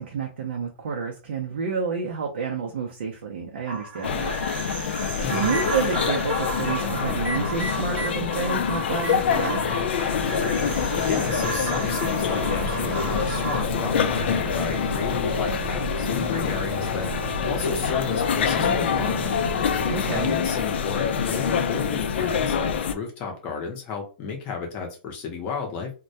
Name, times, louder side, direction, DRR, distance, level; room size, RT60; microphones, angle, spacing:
voice 1, 0.0-9.7 18.6-19.2 19.9-20.4, right 5 dB, 85° right, 0 dB, 0.5 m, -30 dB
sound 1, 3.7-13.6, right 2 dB, 50° right, 0.8 m, -34 dB
sound 2, 4.0-23.0, left 7 dB, 85° left, 0.4 m, -26 dB
Microwave oven, 4.7-5.7 7.1-8.2 8.6-20.4, right 3 dB, 15° right, 0.8 m, -35 dB
voice 2, 5.2-5.6 11.0-17.1 17.5-19.4 20.1-25.9, left 5 dB, 25° left, 1 dB, 0.6 m, -32 dB
2.2 x 2.1 x 2.6 m, 0.33 s
supercardioid pair, 170°, 6 cm